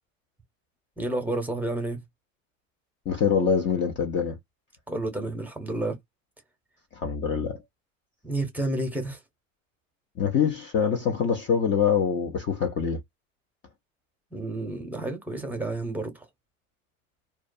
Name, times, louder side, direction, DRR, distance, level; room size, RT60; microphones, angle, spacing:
voice 1, 1.0-2.0 4.9-6.0 8.2-9.2 14.3-16.2, right 2 dB, 5° right, 0.8 m, -30 dB
voice 2, 3.1-4.4 6.9-7.6 10.2-13.0, left 7 dB, 30° left, 0.5 m, -24 dB
2.3 x 2.3 x 2.5 m
hypercardioid pair, 100°, 41 cm